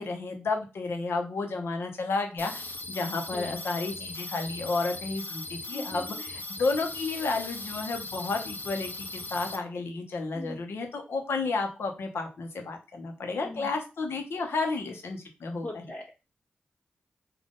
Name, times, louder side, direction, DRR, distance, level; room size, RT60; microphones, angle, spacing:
voice 1, 0.0-15.8, left 3 dB, 80° left, 3 dB, 1.0 m, -32 dB
sound 1, 2.4-9.6, left 2 dB, 55° left, 0.8 m, -39 dB
voice 2, 5.7-6.3 10.3-10.6 13.4-13.7 15.6-16.1, left 1 dB, 35° left, -2 dB, 1.1 m, -40 dB
3.7 x 2.6 x 3.8 m, 0.30 s
cardioid pair, 55°, 4 cm